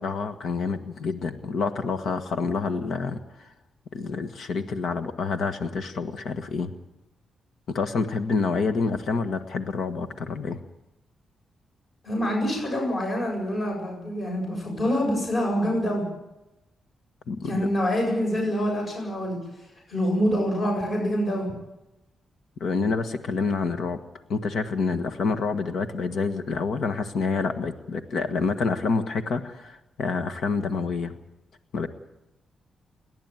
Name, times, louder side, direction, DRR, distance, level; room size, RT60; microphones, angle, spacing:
voice 1, 0.0-3.5 3.9-6.7 7.7-10.6 17.3-17.7 22.6-24.0 24.3-31.1 31.7-31.9, left 4 dB, 65° left, 8 dB, 1.6 m, -28 dB
voice 2, 12.0-16.0 17.4-19.4 19.9-21.5, equal, 35° left, 0 dB, 7.6 m, -26 dB
29.5 x 11.0 x 9.2 m, 0.94 s
cardioid pair, 125°, 0 cm